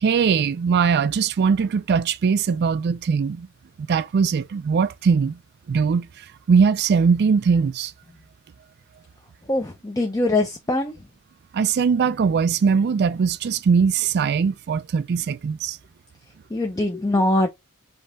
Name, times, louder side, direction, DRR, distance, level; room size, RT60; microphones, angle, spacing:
voice 1, 0.0-3.5 3.9-5.4 5.7-6.1 6.5-7.9 11.5-15.8, right 6 dB, 50° right, 0.3 m, -20 dB
voice 2, 9.5-10.9 16.5-17.5, left 2 dB, 15° left, 0.6 m, -22 dB
5.3 x 2.8 x 3.5 m
head